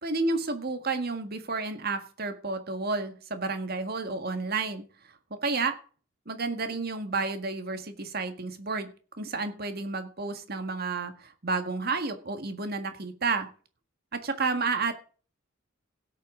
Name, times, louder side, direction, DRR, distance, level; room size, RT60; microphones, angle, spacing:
voice 1, 0.0-4.9 5.4-5.7 6.3-13.5 14.1-14.9, right 3 dB, 50° right, 8 dB, 1.7 m, -31 dB
17.0 x 8.5 x 3.8 m, 0.40 s
head